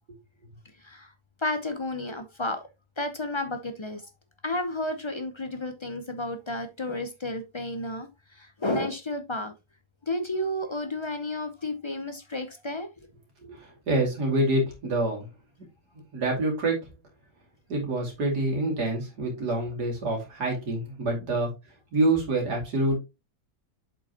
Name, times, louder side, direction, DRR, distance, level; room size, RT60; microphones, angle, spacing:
voice 1, 0.8-1.1 1.4-2.6 3.0-4.0 4.4-9.5 10.0-13.1, left 1 dB, 40° left, 0.4 m, -32 dB
voice 2, 13.4-15.3 16.1-16.8 17.7-21.5 21.9-23.0, right 2 dB, 80° right, 3.0 m, -26 dB
7.4 x 5.3 x 2.9 m
omnidirectional pair, 1.7 m